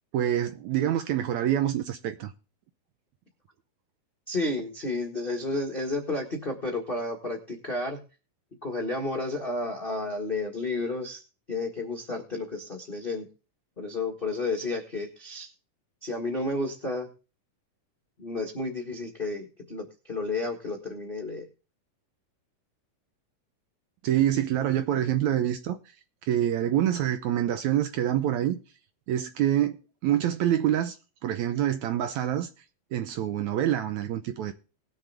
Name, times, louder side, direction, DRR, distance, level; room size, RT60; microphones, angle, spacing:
voice 1, 0.1-2.3 24.0-25.8 26.3-28.6 29.1-29.8 30.0-31.0 31.2-32.5 32.9-34.5, right 11 dB, 75° right, 1.8 m, -26 dB
voice 2, 4.3-8.0 8.6-11.2 11.5-13.3 13.8-15.5 16.0-17.1 18.2-21.5, left 2 dB, 45° left, 0.7 m, -31 dB
19.5 x 6.7 x 3.4 m
omnidirectional pair, 3.8 m